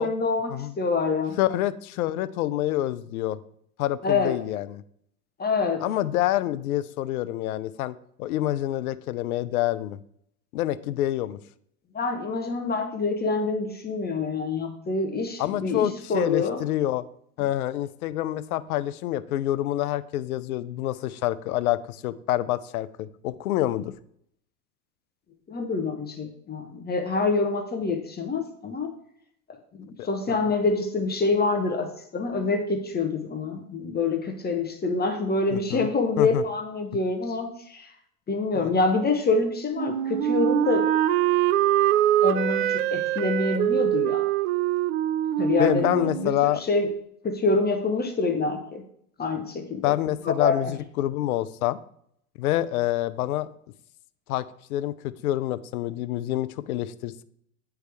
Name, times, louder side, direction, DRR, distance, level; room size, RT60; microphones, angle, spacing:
voice 1, 0.0-0.5 0.8-1.4 4.0-4.3 5.4-5.8 11.9-16.6 25.5-28.9 29.7-37.9 38.3-40.9 42.2-44.3 45.4-46.3 46.7-46.9 47.2-48.8 49.2-49.9 50.2-50.7, left 3 dB, 20° left, 4 dB, 0.9 m, -26 dB
voice 2, 1.4-3.4 3.8-4.8 5.8-10.0 10.5-11.4 15.4-17.1 17.4-23.9 30.0-30.4 35.5-35.9 36.2-36.4 38.5-38.7 45.6-46.6 49.8-51.8 52.4-53.5 54.3-54.4 54.7-57.2, left 14 dB, 85° left, 16 dB, 0.5 m, -27 dB
Wind instrument woodwind instrument, 39.7-46.6, right 12 dB, 70° right, 0.5 m, -24 dB
9.1 x 3.4 x 3.4 m, 0.68 s
hypercardioid pair, 95°, 42 cm